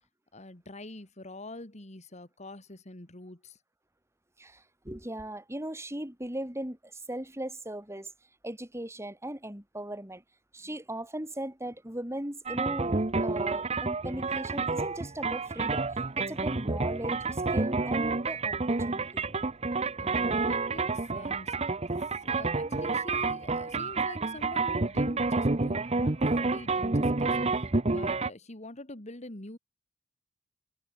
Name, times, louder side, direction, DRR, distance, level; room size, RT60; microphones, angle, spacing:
voice 1, 0.3-3.6 20.0-21.7 22.1-29.6, left 2 dB, 35° left, 2.5 m, -45 dB
voice 2, 4.4-8.1 8.4-10.2 10.5-19.3, right 1 dB, 15° right, 4.8 m, -38 dB
sound 1, 12.5-28.3, right 3 dB, 35° right, 1.0 m, -29 dB
head